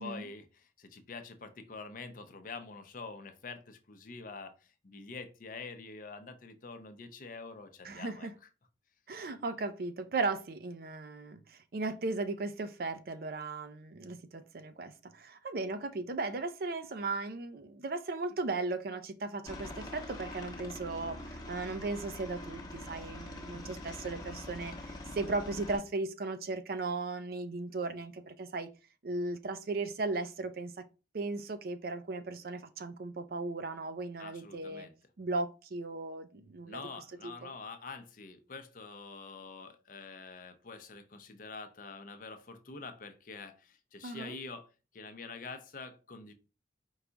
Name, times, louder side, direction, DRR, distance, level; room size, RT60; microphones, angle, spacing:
voice 1, 0.0-8.3 23.5-23.8 34.2-34.9 36.7-44.7 44.9-46.3, left 4 dB, 50° left, 0.6 m, -46 dB
voice 2, 7.8-8.3 9.1-28.7 29.0-30.8 31.1-34.9 35.2-36.8 37.2-37.5 44.0-44.4, right 3 dB, 55° right, 0.4 m, -37 dB
Aircraft, 19.5-25.8, left 1 dB, 25° left, 0.9 m, -44 dB
4.7 x 2.3 x 3.9 m
head